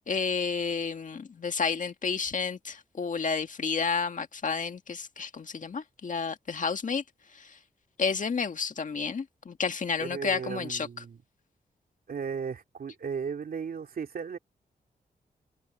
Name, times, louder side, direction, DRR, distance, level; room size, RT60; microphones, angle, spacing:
voice 1, 0.1-7.0 7.4-7.5 8.0-10.9, left 5 dB, 55° left, 1.8 m, -31 dB
voice 2, 10.0-11.2 12.1-14.4, right 6 dB, 70° right, 2.5 m, -35 dB
wide cardioid pair, 90°, 16 cm